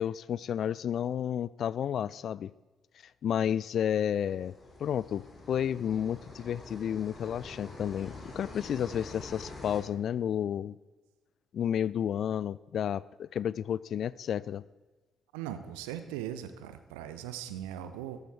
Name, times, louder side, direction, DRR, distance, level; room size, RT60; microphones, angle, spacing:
voice 1, 0.0-2.5 3.2-4.5 4.8-10.8 11.5-14.6, left 9 dB, 50° left, 20 dB, 0.3 m, -31 dB
sound 1, 4.0-9.8, left 2 dB, 35° left, 3.8 m, -46 dB
voice 2, 15.3-18.2, right 11 dB, 70° right, 10 dB, 0.8 m, -39 dB
14.0 x 13.0 x 4.4 m, 1.2 s
figure-of-eight pair, 45°, 0 cm